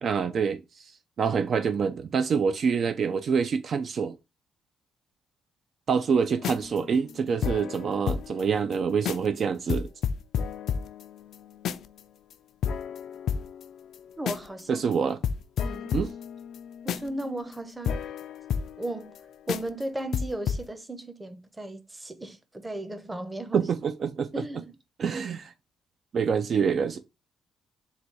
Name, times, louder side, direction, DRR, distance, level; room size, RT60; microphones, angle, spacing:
voice 1, 0.0-4.1 5.9-9.9 14.7-15.2 15.9-16.1 23.5-24.3 25.0-25.5 26.1-27.0, right 6 dB, 55° right, 0.4 m, -26 dB
sound 1, 6.3-8.4 8.7-8.8 9.0-9.4 9.7-12.0 12.3-12.4 12.6-14.6 14.9-15.0 15.2-19.2 19.5-19.8 20.1-20.7, left 7 dB, 70° left, 0.3 m, -32 dB
voice 2, 14.2-14.9 15.6-15.9 16.8-18.0 18.8-19.2 19.5-23.6 24.3-24.7, right 1 dB, 15° right, 0.7 m, -35 dB
4.0 x 2.3 x 4.5 m
cardioid pair, 90°, 0 cm